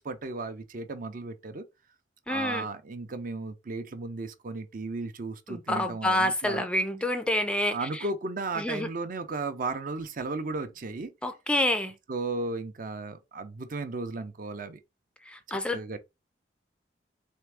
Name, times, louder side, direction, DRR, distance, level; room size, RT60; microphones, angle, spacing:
voice 1, 0.0-1.7 2.3-6.6 7.7-11.1 12.1-14.8 15.5-16.0, right 3 dB, 50° right, 0.6 m, -35 dB
voice 2, 2.3-2.7 5.5-8.0 8.6-8.9 11.2-11.9 15.3-15.8, left 1 dB, 5° left, 0.4 m, -28 dB
3.6 x 3.3 x 3.5 m
head